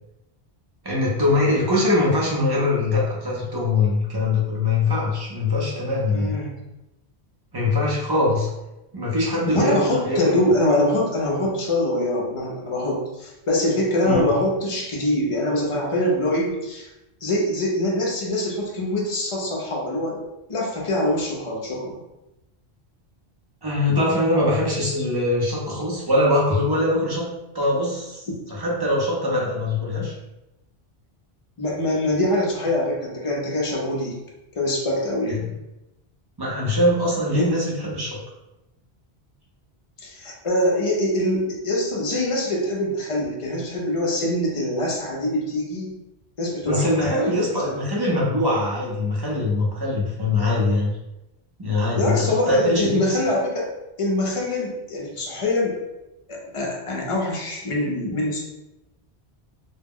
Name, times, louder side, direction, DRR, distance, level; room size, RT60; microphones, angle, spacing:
voice 1, 0.8-6.4 7.5-8.5 8.9-10.4 14.0-14.2 23.6-27.3 27.5-30.1 35.3-35.5 36.4-38.2 46.6-50.9 51.6-53.2, left 2 dB, 30° right, -4 dB, 0.4 m, -22 dB
voice 2, 6.1-6.6 9.5-16.9 17.2-20.2 20.5-22.0 28.3-28.4 31.6-34.2 34.5-35.4 37.3-37.5 40.0-45.9 46.4-47.8 51.9-53.7 54.0-55.8 56.3-58.4, left 1 dB, 45° left, -2 dB, 0.4 m, -24 dB
2.2 x 2.0 x 3.5 m, 0.94 s
omnidirectional pair, 1.1 m